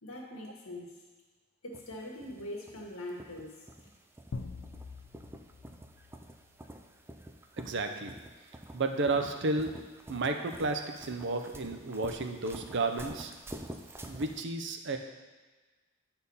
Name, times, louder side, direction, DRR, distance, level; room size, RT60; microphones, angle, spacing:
voice 1, 0.0-1.0 1.6-3.7, left 1 dB, 90° left, -2 dB, 1.6 m, -42 dB
sound 1, 1.7-14.4, right 1 dB, 10° right, 0.4 m, -48 dB
sound 2, 4.3-7.1, left 3 dB, 65° left, 0.5 m, -45 dB
voice 2, 7.6-8.1 8.7-9.7 10.1-13.3 14.0-15.0, right 3 dB, 60° right, 5 dB, 0.7 m, -32 dB
8.3 x 4.3 x 5.5 m, 1.3 s
head